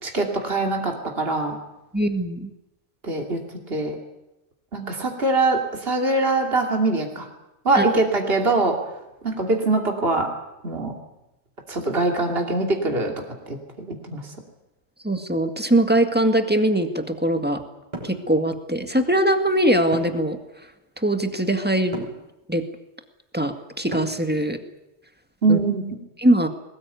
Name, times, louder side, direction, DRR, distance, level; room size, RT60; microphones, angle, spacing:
voice 1, 0.0-1.6 3.0-3.4 3.7-3.9 4.7-7.3 7.6-8.8 9.2-10.3 10.6-10.9 11.7-13.1 13.5-14.3 25.4-26.0, right 2 dB, 55° right, 2 dB, 3.0 m, -23 dB
voice 2, 1.9-2.5 7.8-7.9 15.0-17.6 18.0-20.4 21.0-22.0 22.5-22.6 23.3-24.6 25.5-25.6 26.2-26.5, right 1 dB, 10° right, 6 dB, 1.9 m, -21 dB
sound 1, 17.9-18.2 19.9-20.3 21.9-22.2 23.9-24.3, right 1 dB, 30° right, 5.3 m, -34 dB
22.0 x 19.0 x 9.4 m, 0.94 s
omnidirectional pair, 1.2 m